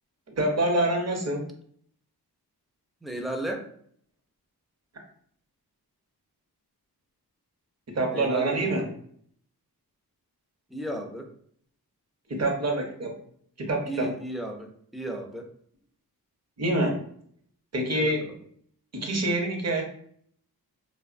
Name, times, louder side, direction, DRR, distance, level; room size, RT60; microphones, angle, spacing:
voice 1, 0.4-1.4 7.9-8.9 12.3-13.1 13.6-14.1 16.6-17.0 17.7-18.3 18.9-19.8, right 1 dB, 45° right, 2 dB, 0.7 m, -26 dB
voice 2, 3.0-3.6 8.1-8.9 10.7-11.3 13.9-15.5 17.9-18.2, right 1 dB, ahead, 2 dB, 0.3 m, -34 dB
2.9 x 2.0 x 2.4 m, 0.63 s
cardioid pair, 60°, 38 cm